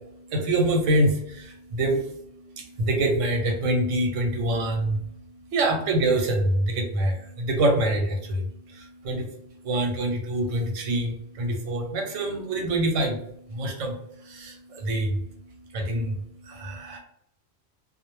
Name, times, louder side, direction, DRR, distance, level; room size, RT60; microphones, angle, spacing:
voice 1, 0.0-17.0, right 1 dB, 90° right, 3 dB, 1.0 m, -26 dB
2.4 x 2.0 x 3.0 m, 0.71 s
omnidirectional pair, 1.3 m